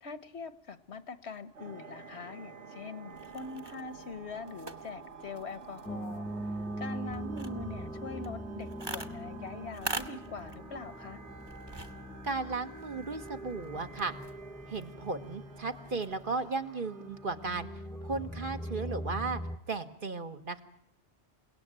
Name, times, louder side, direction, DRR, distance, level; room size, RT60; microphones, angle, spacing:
voice 1, 0.0-6.5 6.8-11.2, left 4 dB, 75° left, 12 dB, 1.5 m, -43 dB
sound 1, 1.5-17.8, right 4 dB, 90° right, 1.7 m, -50 dB
sound 2, 3.1-16.5, right 2 dB, 25° right, 1.3 m, -46 dB
sound 3, 5.9-19.6, right 1 dB, 5° left, 0.9 m, -42 dB
voice 2, 12.2-14.2 14.7-17.7 18.0-19.4 19.7-20.6, right 3 dB, 50° right, 7 dB, 1.6 m, -35 dB
29.0 x 18.0 x 9.0 m, 0.76 s
omnidirectional pair, 1.1 m